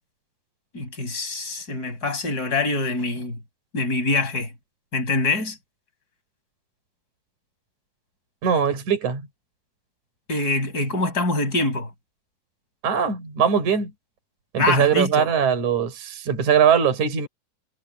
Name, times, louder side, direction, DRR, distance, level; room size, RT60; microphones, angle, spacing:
voice 1, 0.7-3.4 3.7-4.5 4.9-5.6 10.3-11.9 14.6-15.3, left 2 dB, 20° left, 6.9 m, -24 dB
voice 2, 8.4-9.2 12.8-13.9 14.5-17.3, right 7 dB, 40° right, 6.2 m, -21 dB
omnidirectional pair, 5.3 m